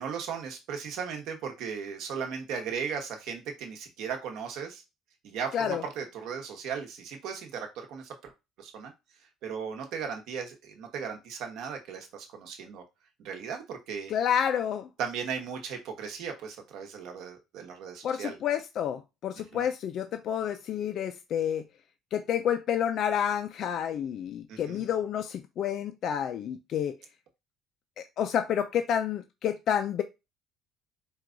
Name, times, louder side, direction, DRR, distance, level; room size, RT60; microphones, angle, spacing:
voice 1, 0.0-4.8 5.2-8.3 8.6-8.9 9.4-12.8 13.2-14.1 15.0-18.4 19.4-19.6 24.5-24.8, right 6 dB, 55° right, 1.1 m, -37 dB
voice 2, 14.1-14.9 18.0-21.6 22.1-26.9 28.0-30.0, left 9 dB, 40° left, 0.3 m, -29 dB
4.5 x 2.3 x 3.8 m
cardioid pair, 175°, 0 cm